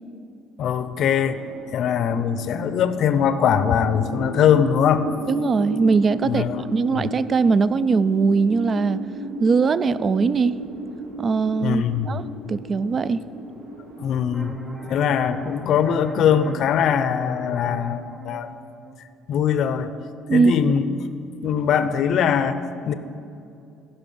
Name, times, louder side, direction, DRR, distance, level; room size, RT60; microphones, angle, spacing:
voice 1, 0.6-1.4 1.7-5.1 6.2-6.6 11.6-12.2 14.0-14.6 14.9-18.5 19.3-20.0 20.3-20.8 21.4-22.9, left 8 dB, 60° left, 12 dB, 0.6 m, -21 dB
sound 1, 1.0-15.4, right 1 dB, 85° right, 1.4 m, -35 dB
voice 2, 5.3-9.0 9.4-10.6 11.2-12.2 12.5-13.2 20.3-20.7, right 4 dB, 35° right, 16 dB, 0.3 m, -20 dB
sound 2, 14.3-19.7, right 2 dB, 15° right, 1.0 m, -38 dB
15.0 x 5.7 x 5.5 m, 2.5 s
cardioid pair, 110°, 0 cm